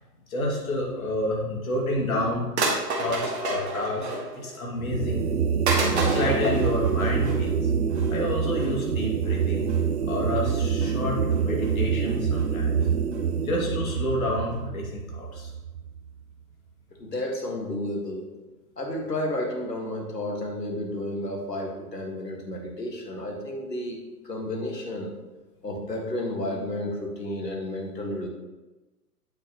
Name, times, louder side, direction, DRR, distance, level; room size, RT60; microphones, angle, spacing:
voice 1, 0.3-4.1 4.3-5.3 5.7-7.7 8.1-9.7 10.1-12.8 13.4-15.5, left 1 dB, 60° left, -2 dB, 2.4 m, -29 dB
sound 1, 1.8-1.9 2.6-4.5 4.9-5.1 5.7-7.5 7.9-8.1 8.5-8.7 9.2-9.4 9.7-9.8 10.5-10.9 11.3-11.7 12.1-12.4 12.8-12.9 13.1-13.2 13.6-13.7 13.9-14.0 14.2-14.3 14.5-14.6, right 2 dB, 40° right, 1.8 m, -30 dB
sound 2, 4.8-16.1, right 6 dB, 70° right, 0.8 m, -26 dB
voice 2, 17.0-18.3 18.8-24.0 24.2-25.2 25.6-28.3, left 1 dB, 80° left, 0 dB, 2.0 m, -31 dB
8.6 x 7.5 x 3.1 m, 1.1 s
figure-of-eight pair, 120°, 48 cm